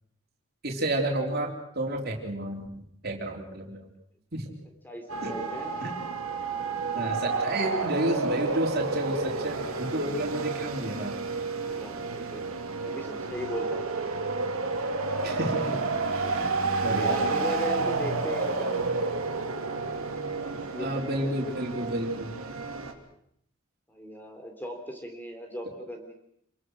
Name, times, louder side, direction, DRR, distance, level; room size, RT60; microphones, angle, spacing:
voice 1, 0.6-3.8 4.3-4.5 5.2-5.3 5.8-5.9 6.9-11.2 15.2-15.9 16.4-16.5 16.8-17.2 20.8-22.3, right 1 dB, 45° right, 1 dB, 4.0 m, -31 dB
voice 2, 4.8-5.8 11.7-12.6 12.8-13.9 16.9-19.2 20.5-21.1 23.9-26.1, equal, 10° left, 4 dB, 3.8 m, -37 dB
sound 1, 5.1-22.9, right 3 dB, 80° right, 3.0 m, -30 dB
sound 2, 15.2-17.2, left 3 dB, 75° left, 5.5 m, -48 dB
27.5 x 21.0 x 6.5 m, 0.71 s
head